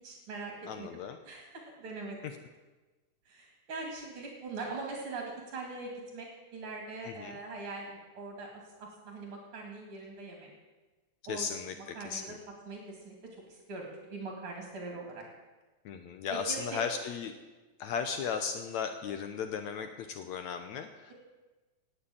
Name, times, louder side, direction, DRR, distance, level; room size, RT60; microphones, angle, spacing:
voice 1, 0.0-0.9 1.2-2.2 3.3-10.5 11.3-11.5 11.8-12.3 12.7-15.2 16.3-16.8, right 3 dB, 45° right, 0 dB, 3.0 m, -42 dB
voice 2, 0.7-1.2 7.0-7.4 11.3-12.4 15.9-17.3 17.8-21.1, left 6 dB, 75° left, 7 dB, 2.0 m, -36 dB
18.5 x 7.0 x 8.8 m, 1.2 s
omnidirectional pair, 3.6 m